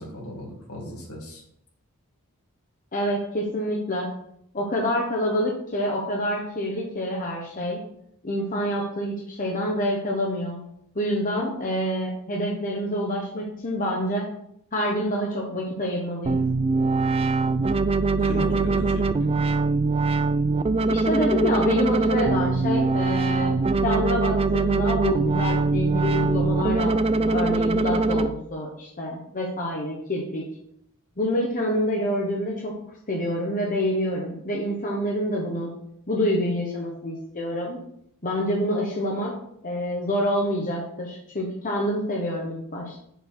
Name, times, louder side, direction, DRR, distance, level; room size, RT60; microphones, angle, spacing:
voice 1, 0.0-1.4 18.2-19.3, equal, 75° left, -2 dB, 2.5 m, -35 dB
voice 2, 2.9-4.1 4.5-7.8 8.2-10.6 10.9-14.3 14.7-16.4 20.9-23.5 23.8-30.5 31.2-32.7 33.1-35.7 36.1-37.8 38.2-39.3 39.6-43.0, equal, 35° left, -1 dB, 1.1 m, -27 dB
sound 1, 16.3-28.3, right 3 dB, 25° right, 0.3 m, -22 dB
6.9 x 4.1 x 6.3 m, 0.72 s
head